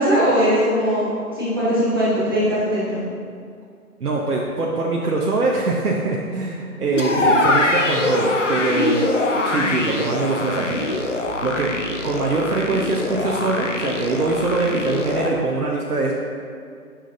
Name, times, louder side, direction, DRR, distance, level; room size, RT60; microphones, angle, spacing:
voice 1, 0.0-3.0 6.9-7.3, equal, 15° right, -12 dB, 1.3 m, -20 dB
voice 2, 4.0-9.1 9.4-16.1, right 3 dB, 75° right, -3 dB, 1.1 m, -23 dB
sound 1, 7.0-15.3, left 2 dB, 55° left, 0.9 m, -23 dB
10.0 x 6.3 x 2.6 m, 2.2 s
figure-of-eight pair, 175°, 46 cm